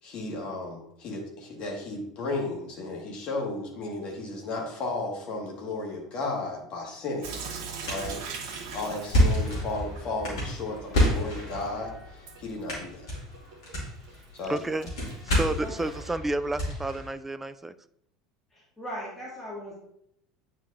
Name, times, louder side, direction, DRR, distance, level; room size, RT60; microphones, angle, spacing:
voice 1, 0.0-7.4 7.9-8.2 8.7-13.1 14.3-14.7, left 2 dB, 45° left, 1.9 m, -34 dB
Sink (filling or washing) / Drip, 7.2-16.1, right 5 dB, 55° right, 0.9 m, -43 dB
sound 1, 7.8-17.1, equal, 65° left, 2.3 m, -29 dB
voice 2, 14.5-14.9 15.3-17.7, right 2 dB, 10° right, 0.3 m, -30 dB
voice 3, 18.5-19.7, equal, 10° left, 1.9 m, -39 dB
9.1 x 4.6 x 2.7 m
figure-of-eight pair, 75°, 3 cm